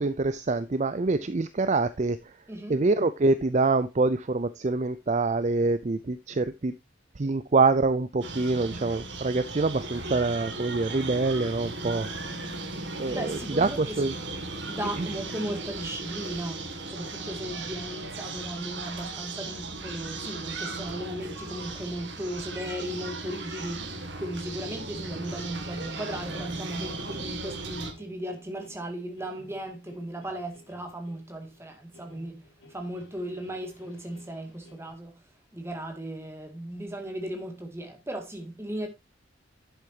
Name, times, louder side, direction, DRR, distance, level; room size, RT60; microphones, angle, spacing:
voice 1, 0.0-2.4 2.7-6.7 7.2-12.1 13.0-14.1 15.0-15.1, right 3 dB, 35° right, 0.5 m, -25 dB
voice 2, 2.5-2.8 13.1-14.2 14.6-38.9, right 1 dB, 15° right, 2.2 m, -37 dB
sound 1, 8.2-27.9, right 3 dB, 65° right, 2.2 m, -37 dB
sound 2, 26.0-34.9, left 1 dB, 75° left, 3.7 m, -56 dB
11.0 x 8.0 x 2.8 m
head